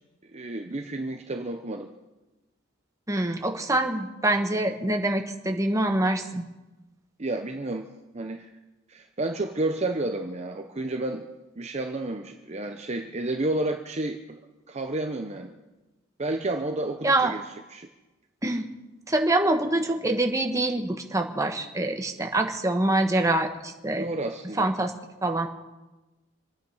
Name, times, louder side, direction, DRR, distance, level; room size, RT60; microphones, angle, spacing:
voice 1, 0.3-1.9 7.2-8.5 8.9-11.3 11.6-14.2 14.7-15.5 16.2-17.9 24.0-24.7, right 2 dB, 30° right, 4 dB, 0.8 m, -31 dB
voice 2, 3.1-6.5 17.0-17.3 18.4-18.7 19.1-24.1 24.6-24.9 25.2-25.5, right 2 dB, 15° right, 4 dB, 1.2 m, -25 dB
26.5 x 9.3 x 5.6 m, 1.1 s
head